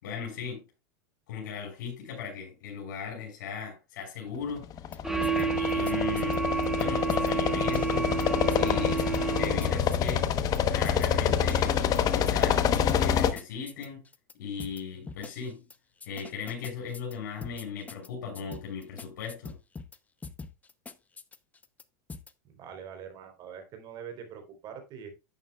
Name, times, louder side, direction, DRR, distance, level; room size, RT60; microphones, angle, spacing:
voice 1, 0.0-0.6 1.3-4.7 5.2-6.5 6.7-8.1 8.6-9.0 9.3-10.3 10.6-12.7 13.0-14.0 14.4-15.6 16.0-19.6, left 6 dB, 75° left, 0 dB, 4.8 m, -37 dB
sound 1, 4.6-13.3, left 8 dB, 35° left, 1.0 m, -27 dB
sound 2, 4.9-5.0 5.2-6.8 7.1-7.3 7.6-8.2 8.5-8.7 9.0-10.6 10.8-12.5 12.7-14.3 14.6-14.8 15.1-15.8 16.0-18.1 18.3-20.0 20.2-21.8 22.1-22.3, left 4 dB, 15° left, 0.7 m, -43 dB
sound 3, 5.0-9.9, right 5 dB, 5° right, 1.1 m, -30 dB
voice 2, 22.4-25.1, right 7 dB, 45° right, 6 dB, 3.7 m, -44 dB
11.0 x 9.1 x 2.3 m, 0.26 s
supercardioid pair, 120°, 10 cm